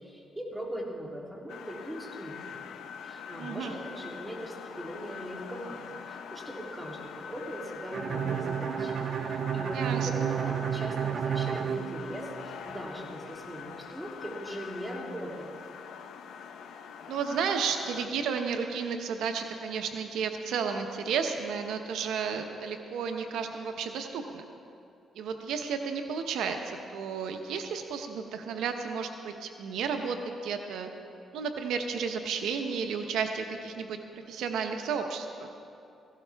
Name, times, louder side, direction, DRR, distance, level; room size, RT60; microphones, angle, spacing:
voice 1, 0.0-2.5 3.0-15.5, equal, 10° right, -3 dB, 3.0 m, -40 dB
sound 1, 1.5-18.1, left 7 dB, 80° left, 0.8 m, -44 dB
voice 2, 3.4-3.8 9.7-10.3 17.1-24.4 25.2-30.9 31.3-34.0 34.3-35.5, right 6 dB, 85° right, 5 dB, 0.8 m, -32 dB
Bowed string instrument, 7.9-12.7, right 8 dB, 55° right, 0.4 m, -31 dB
17.0 x 16.5 x 3.4 m, 2.6 s
cardioid pair, 85°, 0 cm